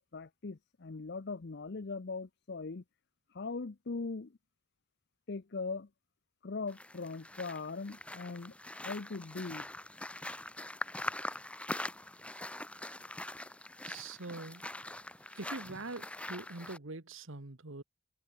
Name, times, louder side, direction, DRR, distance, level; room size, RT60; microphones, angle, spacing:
voice 1, 0.0-2.8 3.3-4.3 5.3-5.9 6.4-8.5 8.8-9.6, left 4 dB, 55° left, 0.6 m, -40 dB
sound 1, 6.7-16.8, left 1 dB, 5° left, 1.8 m, -43 dB
voice 2, 13.8-14.6 15.4-17.8, right 3 dB, 65° right, 1.7 m, -43 dB
head